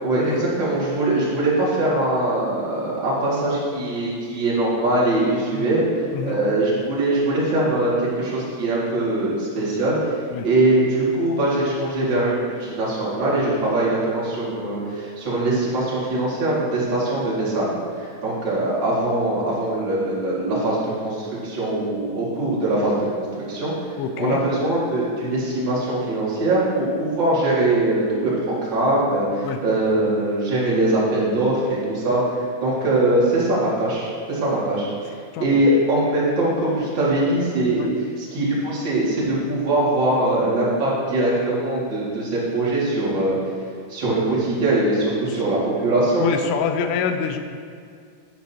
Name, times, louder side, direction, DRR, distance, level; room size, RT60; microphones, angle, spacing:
voice 1, 0.0-5.8 6.2-10.0 10.4-17.7 18.0-23.7 24.2-32.2 32.6-34.9 35.4-43.4 43.9-46.3, right 2 dB, 40° right, -7 dB, 1.6 m, -22 dB
voice 2, 24.0-24.4 29.4-29.6 35.3-35.6 37.8-37.9 44.0-44.1 46.2-47.4, left 7 dB, 90° left, 7 dB, 3.0 m, -26 dB
9.1 x 9.1 x 2.8 m, 2.2 s
omnidirectional pair, 5.3 m